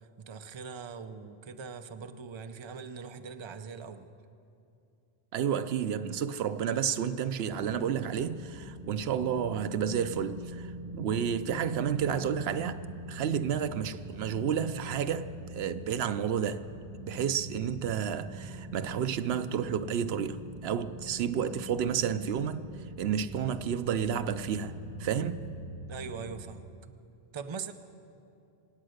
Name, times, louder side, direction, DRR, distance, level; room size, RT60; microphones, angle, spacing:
voice 1, 0.2-4.1 25.9-27.0 27.3-27.7, right 5 dB, 35° right, 0.6 m, -41 dB
voice 2, 5.3-12.8 13.1-16.6 17.0-22.7 23.0-24.7 25.0-25.6, right 8 dB, 80° right, 0.8 m, -31 dB
sound 1, 7.4-26.4, equal, 5° right, 2.5 m, -43 dB
25.5 x 8.8 x 6.5 m
omnidirectional pair, 1.0 m